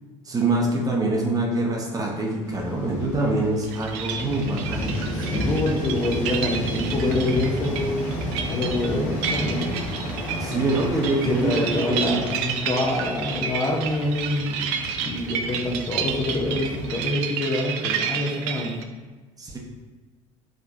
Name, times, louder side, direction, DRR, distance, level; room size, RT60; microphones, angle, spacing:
voice 1, 0.2-5.0 10.4-12.2 19.4-19.6, right 2 dB, 20° right, -1 dB, 1.0 m, -25 dB
sound 1, 2.4-17.0, equal, 45° left, 1.2 m, -32 dB
sound 2, 3.6-18.8, right 7 dB, 55° right, 0.4 m, -31 dB
voice 2, 5.1-8.2 8.5-9.8 11.1-14.7 15.0-18.8, left 2 dB, 25° left, 0 dB, 0.7 m, -26 dB
5.0 x 3.4 x 2.7 m, 1.3 s
figure-of-eight pair, 65°, 16 cm